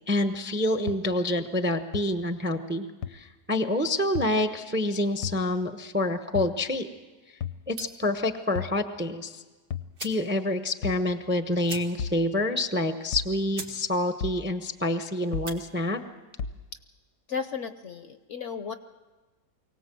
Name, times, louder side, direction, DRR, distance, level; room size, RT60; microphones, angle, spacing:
voice 1, 0.1-2.9 3.1-6.9 7.7-9.4 10.0-16.0, left 1 dB, 10° right, 9 dB, 0.5 m, -27 dB
sound 1, 0.9-1.0 1.9-2.0 3.0-3.1 4.2-4.3 5.2-5.4 6.4-6.6 7.4-7.6 8.6-8.8 9.7-9.9 10.8-11.1 12.0-12.2 13.1-13.3 14.2-14.4 15.3-15.6 16.4-16.6, left 7 dB, 70° left, 1.4 m, -33 dB
sound 2, 7.7-8.1 9.5-9.6 9.9-10.3 10.7-10.8 11.0-11.1 11.6-12.2 12.6-12.7 13.2-13.3 13.5-13.8 14.1-14.5 15.3-15.6, right 4 dB, 80° right, 2.7 m, -41 dB
voice 2, 17.3-18.7, left 6 dB, 55° left, 10 dB, 0.9 m, -34 dB
24.0 x 17.5 x 7.6 m, 1.3 s
omnidirectional pair, 1.8 m